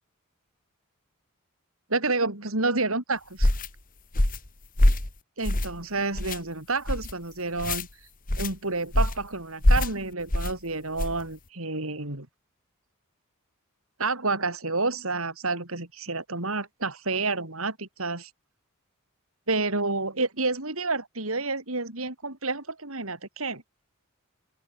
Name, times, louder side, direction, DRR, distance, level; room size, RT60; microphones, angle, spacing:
voice 1, 1.9-3.5 5.4-7.9 8.4-12.3 14.0-18.3 19.5-23.6, right 3 dB, 75° right, 4.7 m, -29 dB
sound 1, 3.4-3.7 4.1-4.5 4.8-5.1 5.4-5.8 6.1-6.4 6.9-7.1 7.6-7.8 8.3-8.5 8.9-9.2 9.6-9.9 10.3-10.5 11.0-11.2, left 1 dB, 40° left, 2.0 m, -23 dB
open air
head